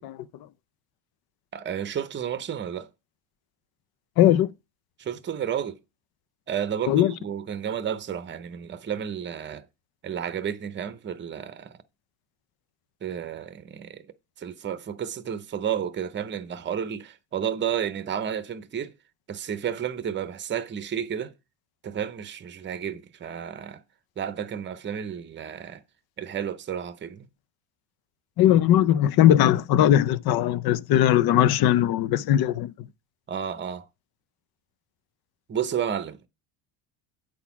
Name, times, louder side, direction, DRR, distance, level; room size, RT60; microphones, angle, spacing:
voice 1, 1.5-2.9 5.0-5.8 6.5-9.6 10.0-11.8 13.0-14.0 14.4-18.9 19.3-21.3 21.8-23.8 24.2-25.8 26.2-27.3 33.3-33.8 35.5-36.3, right 8 dB, 25° right, 0.7 m, -31 dB
voice 2, 4.2-4.5 6.9-7.1 28.4-32.9, left 11 dB, 55° left, 0.6 m, -19 dB
8.5 x 4.1 x 5.8 m
supercardioid pair, 100°, 45 cm